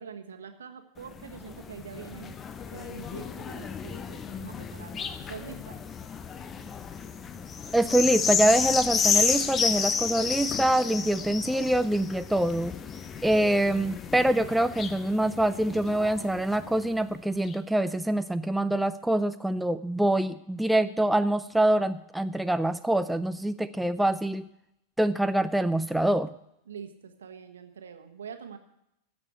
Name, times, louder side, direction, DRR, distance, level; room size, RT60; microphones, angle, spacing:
voice 1, 0.0-2.4 2.7-5.8 26.7-28.6, right 7 dB, 65° right, 6 dB, 1.3 m, -44 dB
sound 1, 1.0-16.8 17.5-17.6, left 6 dB, 25° left, 0.8 m, -32 dB
voice 2, 7.7-12.7 13.2-24.4 25.0-26.3, right 1 dB, 5° right, 11 dB, 0.4 m, -25 dB
15.5 x 6.8 x 8.0 m, 0.82 s
figure-of-eight pair, 90°, 0 cm